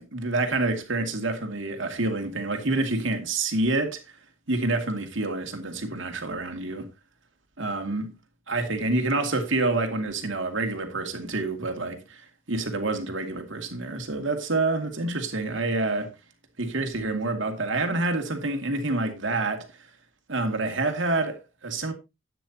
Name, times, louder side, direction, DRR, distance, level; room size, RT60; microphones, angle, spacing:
voice 1, 0.0-4.0 4.5-6.9 7.6-8.1 8.5-12.2 12.5-16.1 16.6-19.7 20.3-21.9, right 2 dB, 70° right, 2.3 m, -27 dB
12.5 x 9.2 x 2.8 m
head